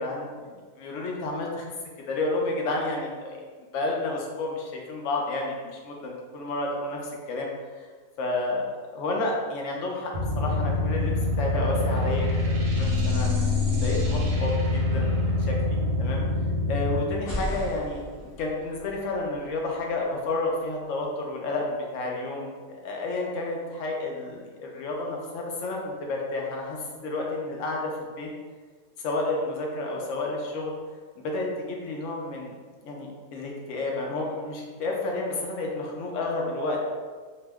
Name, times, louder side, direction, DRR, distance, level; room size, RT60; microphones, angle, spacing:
voice 1, 0.0-1.7 2.1-3.4 3.7-7.0 7.3-7.5 7.8-7.9 8.2-8.6 9.0-16.2 16.7-28.3 29.0-30.7 31.2-32.5 32.8-36.9, left 2 dB, 70° left, -1 dB, 0.9 m, -31 dB
sound 1, 10.1-17.0, left 2 dB, 55° right, 0.7 m, -25 dB
sound 2, 17.1-20.9, left 1 dB, 20° left, 0.7 m, -38 dB
2.8 x 2.1 x 3.4 m, 1.5 s
omnidirectional pair, 1.4 m